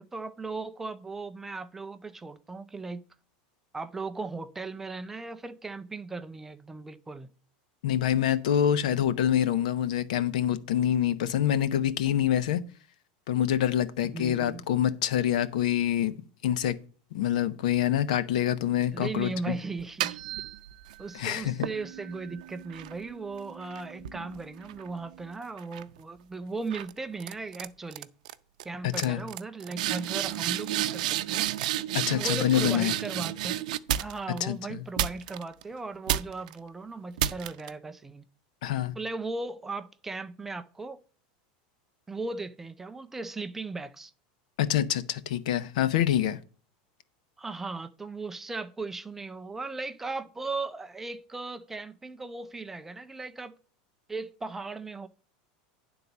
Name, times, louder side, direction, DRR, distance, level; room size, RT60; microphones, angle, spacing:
voice 1, 0.0-3.0 3.7-7.3 14.1-14.6 18.9-20.2 21.0-28.1 28.6-31.5 32.1-33.6 33.9-38.2 39.0-41.0 42.1-44.1 47.4-53.6 54.1-55.1, right 3 dB, 10° right, 0.4 m, -37 dB
voice 2, 7.8-12.6 13.3-16.1 16.4-16.8 17.1-19.5 21.1-21.7 28.8-29.2 31.9-32.9 34.4-34.8 38.6-38.9 44.6-46.4, left 11 dB, 85° left, 0.8 m, -26 dB
sound 1, 19.8-21.0 21.6-25.2 25.6-26.0 26.7-26.9 27.2-27.7 27.9-28.3 28.6-28.7 28.9-34.4 35.0-35.6 36.1-36.5 37.2-37.7, right 13 dB, 85° right, 0.5 m, -32 dB
11.0 x 3.9 x 6.9 m
supercardioid pair, 170°, 4 cm